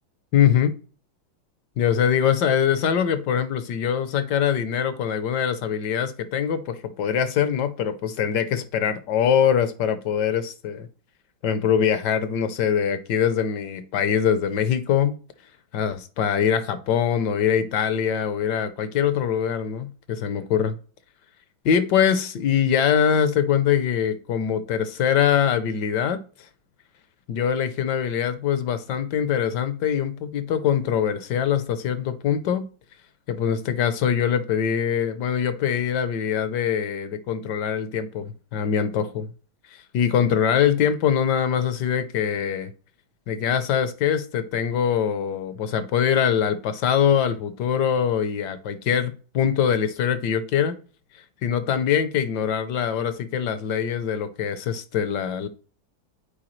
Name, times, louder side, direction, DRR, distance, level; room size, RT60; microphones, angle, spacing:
voice 1, 0.3-0.7 1.8-10.9 11.4-15.1 15.7-20.8 21.6-26.2 27.3-32.7 33.3-39.3 39.9-42.7 43.3-50.8 51.4-55.5, left 8 dB, 70° left, 1.1 m, -23 dB
8.7 x 4.5 x 3.1 m
omnidirectional pair, 2.2 m